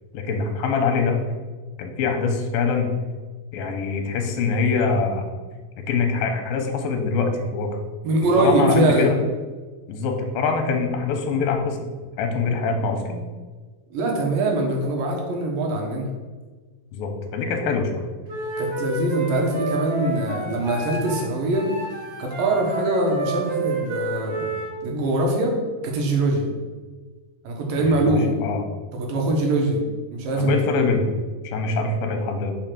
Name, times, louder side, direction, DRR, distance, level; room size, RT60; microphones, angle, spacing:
voice 1, 0.1-1.2 1.8-2.9 3.5-5.2 5.9-7.7 8.4-9.2 9.9-11.8 12.2-13.2 16.9-18.1 27.8-28.6 30.4-31.0 31.4-32.5, left 4 dB, 85° left, 4 dB, 2.7 m, -24 dB
voice 2, 8.0-9.1 13.9-16.1 18.6-21.7 22.2-24.5 24.8-25.6 25.8-26.5 27.4-28.4 28.9-29.8 30.1-30.7, right 2 dB, 75° right, 1 dB, 2.8 m, -22 dB
Wind instrument woodwind instrument, 18.3-21.2 21.5-24.7, right 2 dB, 40° right, 1.9 m, -29 dB
5.5 x 5.1 x 6.0 m, 1.4 s
omnidirectional pair, 4.2 m